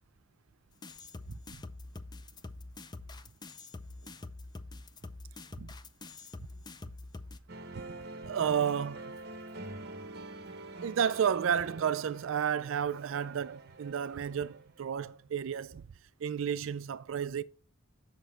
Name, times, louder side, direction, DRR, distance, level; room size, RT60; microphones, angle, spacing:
sound 1, 0.8-7.4, left 2 dB, 20° left, 0.5 m, -46 dB
sound 2, 7.5-15.0, right 2 dB, 50° right, 1.1 m, -46 dB
voice 1, 8.2-9.1 10.8-15.8 16.2-17.4, right 8 dB, 70° right, 0.4 m, -31 dB
8.1 x 6.3 x 4.5 m
head